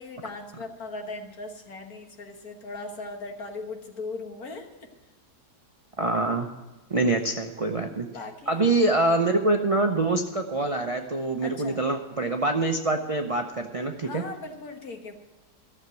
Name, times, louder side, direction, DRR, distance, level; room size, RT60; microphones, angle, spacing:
voice 1, 0.0-4.7 8.1-8.9 11.4-11.8 14.0-15.1, left 3 dB, 65° left, 4 dB, 1.9 m, -38 dB
voice 2, 6.0-6.5 6.9-8.1 8.5-14.2, right 2 dB, 40° right, 4 dB, 0.5 m, -25 dB
14.0 x 7.3 x 7.7 m, 1.2 s
omnidirectional pair, 1.7 m